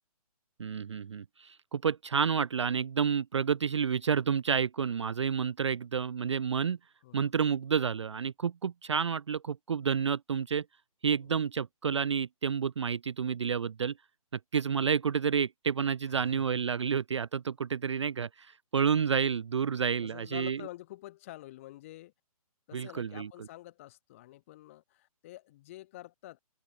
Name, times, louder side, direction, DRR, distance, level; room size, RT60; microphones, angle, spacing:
voice 1, 0.6-6.8 7.1-10.6 11.0-13.9 14.5-20.6 22.7-23.3, right 7 dB, 50° right, 0.4 m, -30 dB
voice 2, 7.0-7.4 11.2-11.3 16.0-16.5 19.6-22.1 22.7-26.4, left 16 dB, 20° left, 4.5 m, -48 dB
open air
hypercardioid pair, 175°, 19 cm